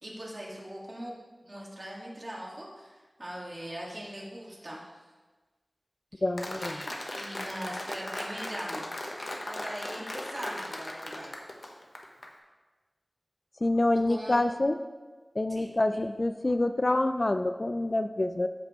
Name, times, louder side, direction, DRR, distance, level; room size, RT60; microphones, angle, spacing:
voice 1, 0.0-1.1 1.4-5.0 6.1-6.2 6.6-8.9 9.5-11.4 13.9-14.4 15.5-16.0, right 1 dB, 40° right, -4 dB, 2.0 m, -41 dB
voice 2, 6.2-6.8 13.6-14.8 15.4-18.5, left 2 dB, 45° left, 9 dB, 0.4 m, -27 dB
Applause, 6.4-12.3, left 1 dB, 60° left, 1.0 m, -38 dB
14.0 x 5.1 x 3.1 m, 1.3 s
wide cardioid pair, 60°, 0 cm